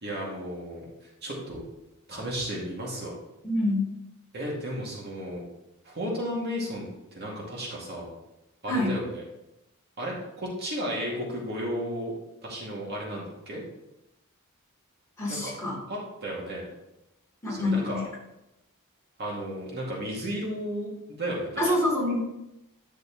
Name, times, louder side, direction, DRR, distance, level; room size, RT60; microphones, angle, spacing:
voice 1, 0.0-0.8 1.2-1.6 2.1-3.2 4.3-5.4 5.8-8.1 8.6-9.2 10.0-12.1 12.4-13.6 15.3-15.5 15.9-16.7 17.5-18.0 19.2-21.8, equal, 50° right, -3 dB, 2.2 m, -34 dB
voice 2, 3.4-3.9 8.7-9.0 15.2-15.8 17.4-18.0 21.6-22.2, left 1 dB, 15° left, -6 dB, 3.3 m, -26 dB
10.5 x 6.2 x 3.0 m, 0.90 s
head